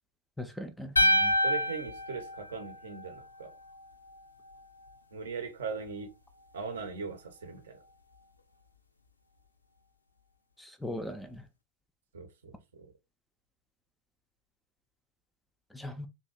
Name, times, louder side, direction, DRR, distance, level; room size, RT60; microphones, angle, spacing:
voice 1, 0.4-1.3 10.6-11.4 15.7-16.1, left 1 dB, 5° left, 0.3 m, -39 dB
sound 1, 1.0-3.2, equal, 80° left, 0.3 m, -27 dB
voice 2, 1.4-3.5 5.1-6.1 6.5-7.8 12.1-12.9, right 5 dB, 65° right, 0.6 m, -39 dB
2.6 x 2.0 x 2.3 m
figure-of-eight pair, 90°, 0 cm